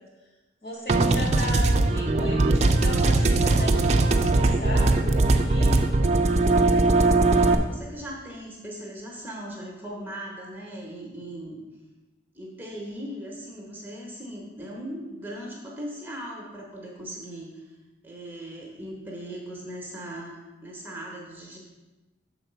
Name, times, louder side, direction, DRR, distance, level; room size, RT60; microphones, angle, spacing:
voice 1, 0.6-5.9, left 1 dB, 55° left, -5 dB, 2.6 m, -36 dB
sound 1, 0.9-7.5, right 2 dB, 35° right, 0.4 m, -20 dB
voice 2, 7.4-11.6 12.3-17.8 18.0-21.6, right 1 dB, 10° right, -2 dB, 0.9 m, -39 dB
6.9 x 4.0 x 5.6 m, 1.1 s
head